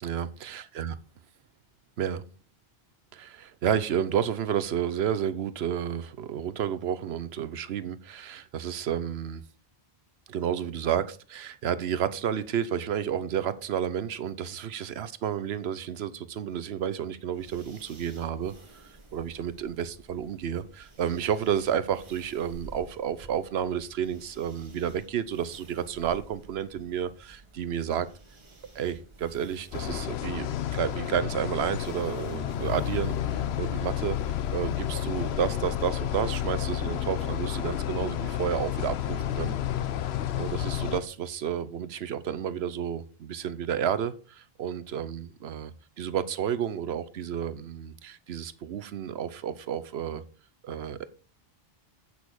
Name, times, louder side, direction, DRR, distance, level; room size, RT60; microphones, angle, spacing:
voice 1, 0.0-0.9 2.0-2.2 3.1-9.4 10.3-28.1 28.7-34.1 34.5-39.6 40.4-45.7 46.0-50.2 50.6-51.0, right 9 dB, 85° right, 1.0 m, -31 dB
sound 1, 17.3-35.7, right 2 dB, 30° right, 1.3 m, -52 dB
sound 2, 29.7-41.0, left 10 dB, 90° left, 0.9 m, -31 dB
8.5 x 6.2 x 4.8 m
omnidirectional pair, 1.0 m